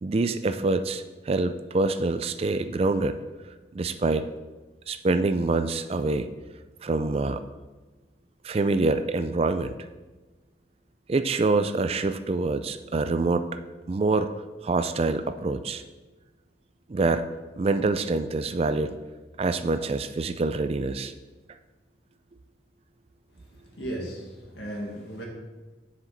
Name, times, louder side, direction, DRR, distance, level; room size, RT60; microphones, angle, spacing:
voice 1, 0.0-3.2 3.7-4.3 4.9-6.3 6.8-7.4 8.4-9.7 11.1-13.5 13.9-14.3 14.6-15.8 16.9-17.3 17.6-19.0 19.4-21.1, right 3 dB, 35° right, 10 dB, 0.4 m, -25 dB
voice 2, 23.3-25.2, right 1 dB, 70° left, -1 dB, 1.9 m, -36 dB
7.2 x 6.4 x 3.9 m, 1.2 s
head